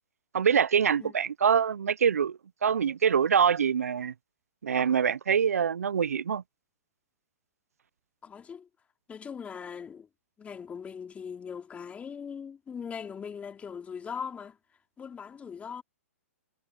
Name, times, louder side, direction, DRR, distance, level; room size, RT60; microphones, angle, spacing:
voice 1, 0.3-4.1 4.6-6.4, right 7 dB, 80° right, 0.6 m, -25 dB
voice 2, 8.2-8.7 9.1-10.1 10.4-14.6 15.0-15.8, left 6 dB, 15° left, 3.8 m, -40 dB
hypercardioid pair, 120°, 8 cm